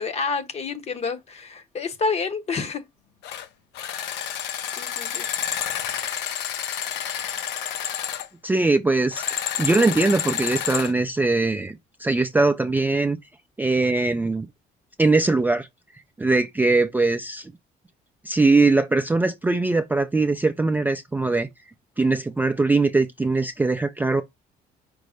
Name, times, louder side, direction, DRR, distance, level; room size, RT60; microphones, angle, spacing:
voice 1, 0.0-2.8 4.8-5.3, left 4 dB, 40° left, 0.8 m, -28 dB
sound 1, 3.2-3.5 3.7-8.3 9.1-10.9, left 9 dB, 85° left, 0.6 m, -29 dB
voice 2, 8.4-13.2 13.6-14.5 15.0-15.7 16.2-17.5 18.3-21.5 22.0-24.2, right 3 dB, 10° right, 0.3 m, -21 dB
5.3 x 2.0 x 4.8 m
cardioid pair, 110°, 17 cm